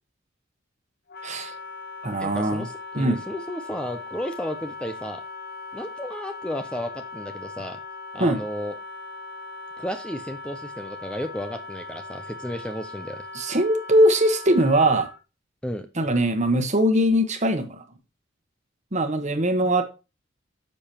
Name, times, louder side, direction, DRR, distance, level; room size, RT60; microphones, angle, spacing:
Wind instrument woodwind instrument, 1.1-15.2, left 3 dB, 50° left, 0.9 m, -39 dB
voice 1, 1.2-1.5 2.0-2.6 2.9-3.2 8.2-8.4 13.3-15.1 16.0-17.8 18.9-19.8, right 1 dB, 35° right, 1.2 m, -21 dB
voice 2, 2.2-5.2 5.7-7.8 8.1-8.7 9.8-13.3 15.6-15.9, equal, 5° left, 0.6 m, -33 dB
10.0 x 6.9 x 2.9 m
head